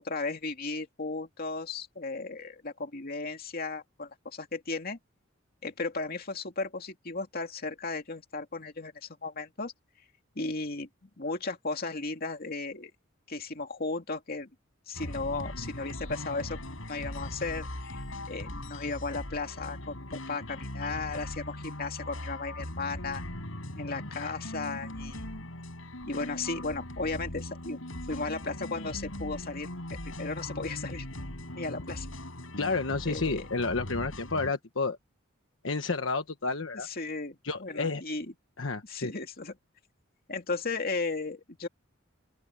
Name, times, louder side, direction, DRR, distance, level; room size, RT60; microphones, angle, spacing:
voice 1, 0.0-5.0 5.6-9.7 10.4-12.9 13.3-14.5 14.9-16.6 16.9-18.0 18.3-23.2 23.7-25.4 26.0-27.8 28.1-31.1 31.5-32.1 33.1-33.5 36.8-38.3 38.8-39.6 40.3-41.7, left 3 dB, 50° left, 2.4 m, -35 dB
sound 1, 14.9-34.5, left 1 dB, 90° left, 5.8 m, -40 dB
voice 2, 32.6-35.0 35.6-36.9 37.4-38.0 38.6-39.1, left 3 dB, 70° left, 1.2 m, -30 dB
open air
head